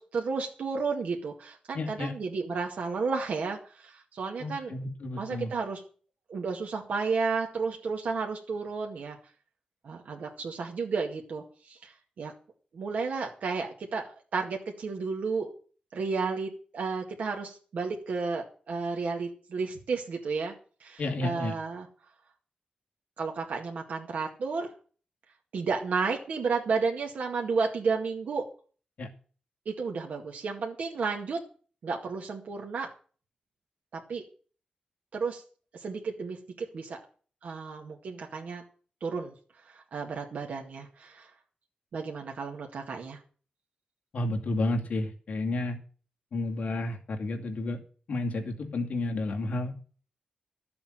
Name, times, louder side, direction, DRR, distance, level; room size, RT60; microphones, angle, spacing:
voice 1, 0.0-4.7 5.2-5.8 6.3-9.2 9.8-12.3 12.7-14.1 14.3-15.5 15.9-20.5 20.8-21.9 23.2-24.7 25.5-28.5 29.7-31.4 31.8-32.9 33.9-34.2 35.1-35.4 35.7-37.0 37.4-38.6 39.0-39.3 39.7-41.3 41.9-43.2, right 4 dB, 75° right, 1 dB, 2.0 m, -32 dB
voice 2, 1.7-2.1 4.4-5.5 21.0-21.5 29.0-29.1 44.1-45.8 46.3-47.8 48.1-49.7, left 2 dB, 65° left, 2 dB, 2.3 m, -31 dB
13.0 x 7.1 x 8.9 m, 0.41 s
wide cardioid pair, 165°, 3 cm